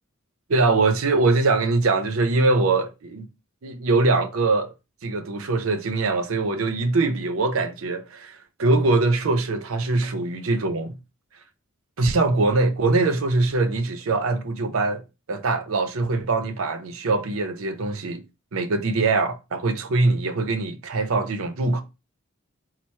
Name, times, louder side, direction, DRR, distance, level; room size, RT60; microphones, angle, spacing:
voice 1, 0.5-3.3 3.6-4.7 5.0-10.9 12.0-15.0 15.3-18.2 18.5-21.8, right 3 dB, 75° right, 0.6 m, -22 dB
4.5 x 2.0 x 4.2 m
head